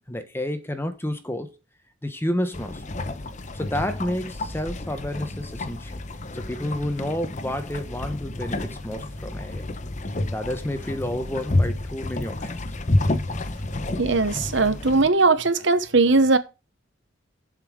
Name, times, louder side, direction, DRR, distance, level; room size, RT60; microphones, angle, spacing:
voice 1, 0.1-1.5 2.0-2.8 3.5-5.9 6.3-9.7 10.3-12.5, left 1 dB, 10° left, 1.1 m, -30 dB
sound 1, 2.5-15.1, left 2 dB, 35° left, 0.9 m, -30 dB
voice 2, 14.0-16.4, right 3 dB, 60° right, 1.0 m, -19 dB
7.6 x 5.5 x 6.3 m
head